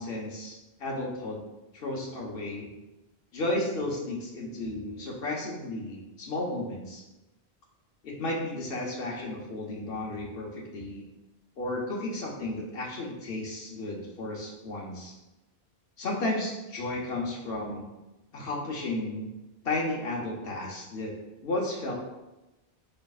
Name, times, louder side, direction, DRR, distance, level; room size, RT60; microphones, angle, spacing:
voice 1, 0.0-1.4 1.7-2.7 3.3-7.0 8.0-11.0 11.6-15.1 16.0-17.9 18.3-19.3 19.6-21.1 21.4-21.9, left 2 dB, 65° left, -2 dB, 1.1 m, -33 dB
5.1 x 3.1 x 2.3 m, 1.0 s
omnidirectional pair, 1.1 m